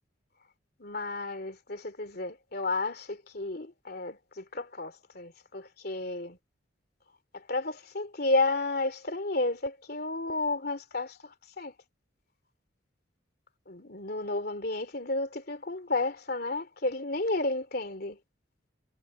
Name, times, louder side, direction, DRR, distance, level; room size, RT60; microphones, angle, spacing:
voice 1, 0.8-6.4 7.3-11.7 13.7-18.2, left 2 dB, 50° left, 3.1 m, -32 dB
head